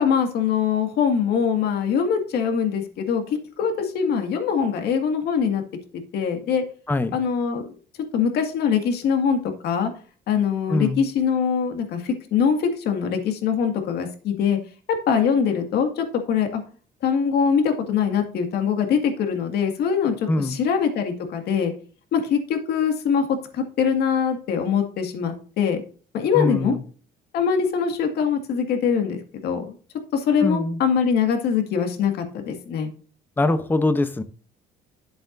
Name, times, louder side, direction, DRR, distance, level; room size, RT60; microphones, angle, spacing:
voice 1, 0.0-5.6 6.1-6.6 7.1-7.7 8.1-9.9 10.3-14.6 14.9-16.6 17.0-21.7 22.1-25.8 26.1-26.8 27.3-29.7 30.1-32.9, left 7 dB, 70° left, 2.0 m, -23 dB
voice 2, 10.7-11.0 20.3-20.6 26.3-26.8 30.4-30.8 33.4-34.2, left 2 dB, 10° left, 0.8 m, -22 dB
11.0 x 7.8 x 2.6 m
cardioid pair, 110°, 17 cm